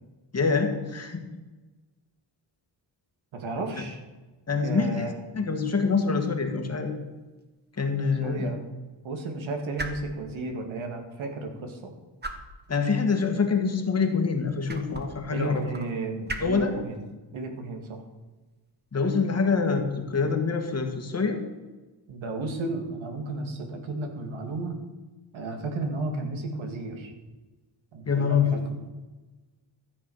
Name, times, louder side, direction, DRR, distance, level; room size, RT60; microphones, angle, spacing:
voice 1, 0.3-1.2 4.5-5.1 5.3-6.9 7.7-8.5 12.7-15.6 16.4-16.7 18.9-21.5 28.0-28.6, left 5 dB, 35° left, 5 dB, 1.7 m, -25 dB
voice 2, 3.3-4.0 4.6-5.1 8.2-8.6 9.0-11.9 15.3-17.0 17.3-18.0 22.1-24.8 25.3-27.1 27.9-28.8, right 2 dB, 80° right, 4 dB, 2.4 m, -33 dB
sound 1, 6.8-20.3, right 2 dB, 20° right, 1.3 m, -44 dB
13.5 x 8.1 x 6.4 m, 1.2 s
wide cardioid pair, 140°, 46 cm